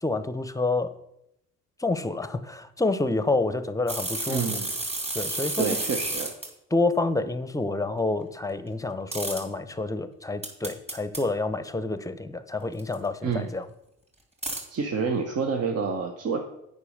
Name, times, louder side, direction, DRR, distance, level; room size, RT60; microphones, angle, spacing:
voice 1, 0.0-0.9 1.8-4.6 5.1-5.8 6.7-13.7, left 2 dB, 10° left, 13 dB, 0.7 m, -28 dB
sound 1, 3.9-6.5 9.1-9.4 10.4-11.2 12.8-12.9 14.4-14.6, right 2 dB, 20° right, 2.8 m, -31 dB
voice 2, 4.3-4.7 5.6-6.3 13.2-13.5 14.7-16.4, right 5 dB, 55° right, 4 dB, 1.0 m, -28 dB
8.2 x 5.5 x 6.4 m, 0.83 s
cardioid pair, 90°, 30 cm